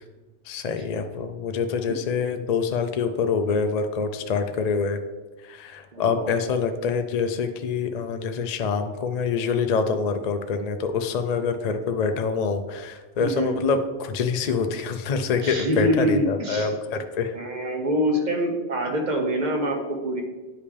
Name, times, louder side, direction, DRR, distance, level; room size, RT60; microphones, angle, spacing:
voice 1, 0.5-5.0 5.4-17.3, left 5 dB, 55° left, 7 dB, 0.4 m, -26 dB
voice 2, 5.9-6.4 13.2-13.5 15.4-16.7 17.3-20.2, equal, 45° right, 3 dB, 1.0 m, -25 dB
9.4 x 5.3 x 3.3 m, 1.3 s
omnidirectional pair, 1.2 m